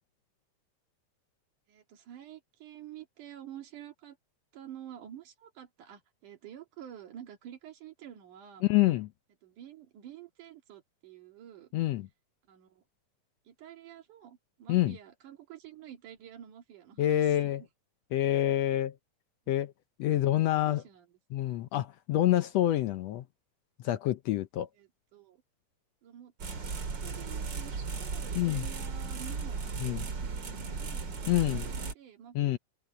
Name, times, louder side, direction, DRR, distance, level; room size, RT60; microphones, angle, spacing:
voice 1, 1.7-4.2 4.5-8.7 9.4-11.7 12.5-12.8 13.5-17.7 19.5-19.6 20.1-21.1 24.8-25.4 26.0-26.3 26.7-32.6, right 10 dB, 80° right, 3.7 m, -49 dB
voice 2, 8.6-9.1 11.7-12.1 14.7-15.0 17.0-17.6 18.1-18.9 19.5-19.7 20.0-20.8 21.3-23.2 23.8-24.7 28.3-28.7 29.8-30.0 31.3-31.7 32.3-32.6, left 14 dB, 75° left, 1.6 m, -27 dB
sound 1, 26.4-31.9, right 4 dB, 40° right, 2.5 m, -36 dB
omnidirectional pair, 3.5 m